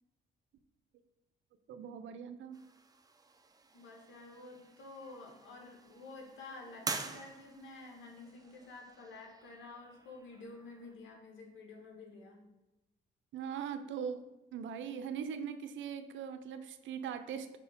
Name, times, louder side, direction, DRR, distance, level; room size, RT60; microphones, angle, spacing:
voice 1, 1.7-2.6 13.3-17.6, right 7 dB, 70° right, 9 dB, 0.6 m, -41 dB
sound 1, 2.5-11.0, right 3 dB, 20° right, 0.6 m, -47 dB
voice 2, 3.7-12.4, left 3 dB, 75° left, 1 dB, 1.6 m, -50 dB
5.0 x 3.5 x 5.7 m, 1.0 s
cardioid pair, 90°, 20 cm